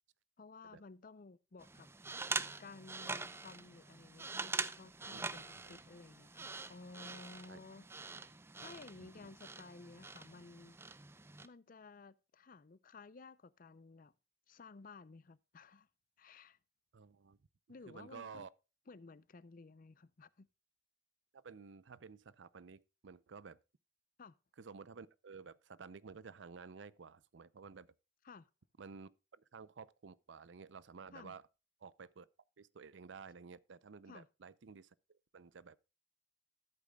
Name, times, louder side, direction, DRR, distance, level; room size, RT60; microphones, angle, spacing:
voice 1, 0.4-1.9 2.6-8.2 8.6-10.8 11.4-14.1 14.5-15.9 16.2-16.6 17.7-18.5 18.9-20.5 24.2-24.4 28.2-28.5 31.1-31.4 34.1-34.3, left 3 dB, 45° left, 0.5 m, -55 dB
sound 1, 1.6-11.5, right 3 dB, 15° right, 0.5 m, -44 dB
voice 2, 9.0-9.3 16.9-17.4 17.9-18.5 21.3-23.6 24.6-27.9 28.8-31.4 31.8-32.3 32.6-35.8, right 5 dB, 75° right, 0.5 m, -53 dB
14.0 x 8.3 x 2.3 m
head